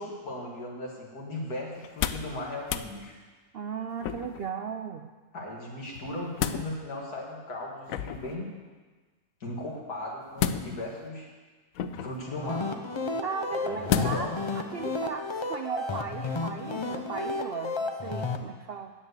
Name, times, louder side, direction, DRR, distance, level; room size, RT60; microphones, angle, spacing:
voice 1, 0.0-3.1 5.3-8.5 9.4-11.3 12.0-12.7 13.6-14.3, left 1 dB, 85° left, -2 dB, 2.7 m, -37 dB
sound 1, 1.8-2.3 2.6-2.9 4.0-4.5 5.9-6.7 7.9-8.4 10.4-11.0 11.8-12.2 13.9-14.4 14.8-14.9, left 8 dB, 70° left, 0.9 m, -31 dB
voice 2, 3.5-5.1 13.2-14.3 14.7-18.9, right 6 dB, 65° right, 5 dB, 0.6 m, -36 dB
sound 2, 12.3-18.4, left 3 dB, 40° left, 0.4 m, -33 dB
9.8 x 7.6 x 8.1 m, 1.4 s
omnidirectional pair, 1.6 m